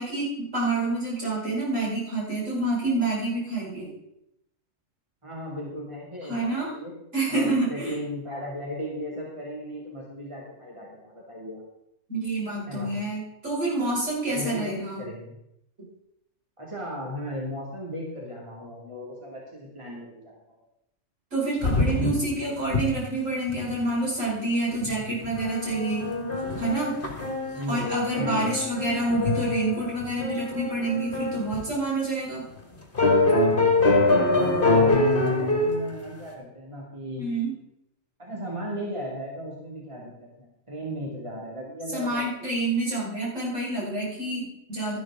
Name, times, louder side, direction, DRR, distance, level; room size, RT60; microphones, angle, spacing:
voice 1, 0.0-3.9 6.2-6.7 7.1-8.0 12.1-15.0 21.3-26.0 26.6-26.9 27.7-32.4 37.2-37.5 41.9-45.0, right 2 dB, 65° right, -7 dB, 6.1 m, -28 dB
voice 2, 5.2-6.9 7.3-11.6 12.7-12.9 14.3-15.3 16.6-20.3 24.8-25.1 27.5-28.5 33.8-37.2 38.2-42.2, equal, 20° right, -3 dB, 2.6 m, -36 dB
sound 1, 21.6-22.4 22.6-22.8 23.2-23.3 23.5-23.8 24.8-24.9 25.2-31.7 32.2-32.3 33.0-35.8, left 2 dB, 40° left, 2.4 m, -24 dB
12.5 x 12.0 x 3.7 m, 0.81 s
omnidirectional pair, 1.4 m